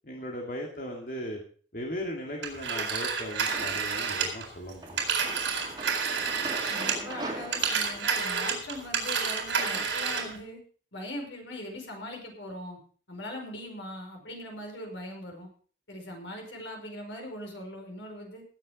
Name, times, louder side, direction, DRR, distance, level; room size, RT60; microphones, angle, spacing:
voice 1, 0.0-1.4 1.7-5.0, equal, 50° left, -1 dB, 2.4 m, -37 dB
Telephone, 2.4-7.1 7.4-10.4, right 6 dB, 75° right, 4.3 m, -30 dB
sound 1, 3.5-4.1 4.8-9.9, right 2 dB, 25° right, 2.3 m, -41 dB
voice 2, 6.7-10.6 10.9-12.8 13.1-15.5 15.9-18.4, left 1 dB, 80° left, 2 dB, 5.1 m, -40 dB
18.5 x 7.7 x 5.2 m, 0.43 s
head